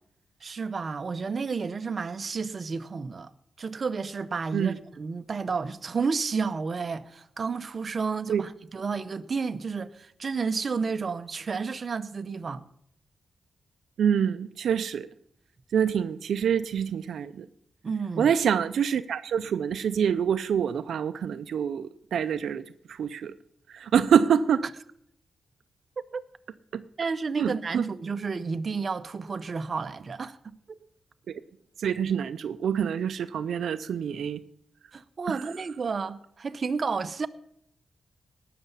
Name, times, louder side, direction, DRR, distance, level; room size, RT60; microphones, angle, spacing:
voice 1, 0.4-3.3 3.6-12.6 17.8-18.3 26.0-26.2 27.0-30.4 30.7-30.8 34.9-37.3, right 5 dB, 45° right, 0.7 m, -31 dB
voice 2, 14.0-15.1 15.7-17.5 18.2-23.3 23.7-24.6 26.7-26.8 27.4-27.8 31.3-31.4 31.8-34.4 35.3-35.4, right 8 dB, 90° right, 0.4 m, -26 dB
18.0 x 6.7 x 5.5 m
wide cardioid pair, 105°, 0 cm